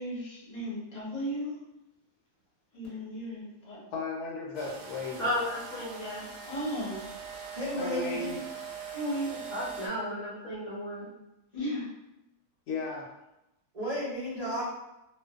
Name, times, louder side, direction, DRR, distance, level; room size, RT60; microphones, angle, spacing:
voice 1, 0.0-1.6 2.7-3.8 6.5-7.1 8.9-9.3 11.5-11.9, equal, 35° left, -8 dB, 0.8 m, -35 dB
voice 2, 3.9-5.3 7.8-8.4 12.7-13.1, left 3 dB, 85° left, -1 dB, 1.1 m, -35 dB
sound 1, 4.5-9.9, right 6 dB, 90° right, 1.1 m, -42 dB
voice 3, 5.2-6.3 9.3-11.1, left 1 dB, 60° left, -6 dB, 0.9 m, -34 dB
voice 4, 7.5-8.4 13.7-14.6, left 1 dB, 65° right, -11 dB, 0.4 m, -33 dB
2.5 x 2.1 x 2.3 m, 0.91 s
omnidirectional pair, 1.6 m